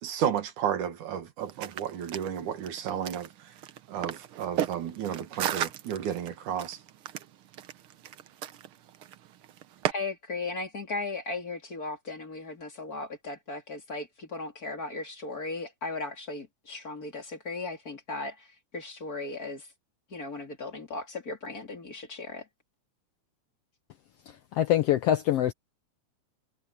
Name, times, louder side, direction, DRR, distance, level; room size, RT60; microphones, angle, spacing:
voice 1, 0.0-3.3 3.9-6.8, right 9 dB, 90° right, 3.2 m, -32 dB
sound 1, 1.4-9.9, right 11 dB, 65° right, 1.4 m, -36 dB
voice 2, 9.9-19.7 20.1-22.5, left 3 dB, 30° left, 3.1 m, -37 dB
voice 3, 24.6-25.5, left 12 dB, 75° left, 1.5 m, -24 dB
omnidirectional pair, 3.4 m